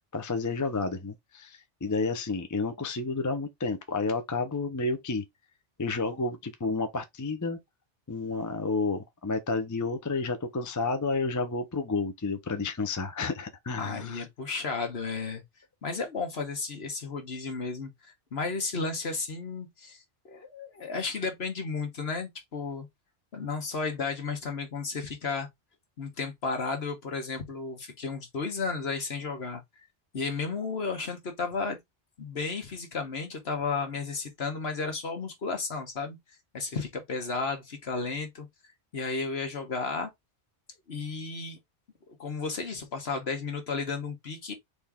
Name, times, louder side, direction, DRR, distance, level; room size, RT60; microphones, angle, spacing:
voice 1, 0.1-5.2 5.8-7.6 8.1-14.2, left 3 dB, 20° left, 0.5 m, -31 dB
voice 2, 13.8-15.4 15.8-22.9 23.3-25.5 26.0-29.6 30.1-31.8 32.2-36.2 36.5-38.5 38.9-40.1 40.9-41.6 42.1-44.5, left 4 dB, 60° left, 1.6 m, -33 dB
4.3 x 3.3 x 3.6 m
omnidirectional pair, 1.2 m